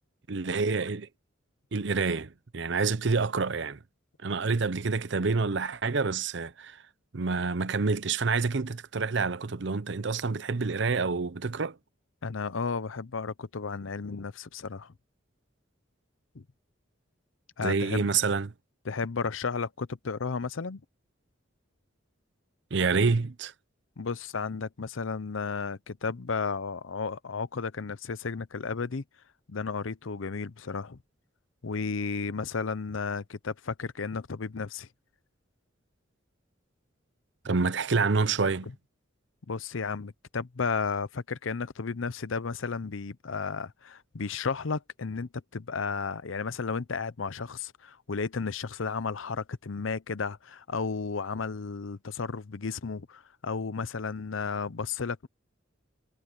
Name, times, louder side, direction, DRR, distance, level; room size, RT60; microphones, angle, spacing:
voice 1, 0.3-1.1 1.7-3.8 4.2-6.8 7.1-11.8 17.6-18.5 22.7-23.5 37.4-38.7, right 4 dB, 60° right, 0.7 m, -27 dB
voice 2, 12.2-14.9 16.3-16.4 17.6-18.1 18.9-20.8 24.0-29.0 29.5-31.0 31.6-34.9 39.5-55.3, left 5 dB, 80° left, 0.7 m, -33 dB
head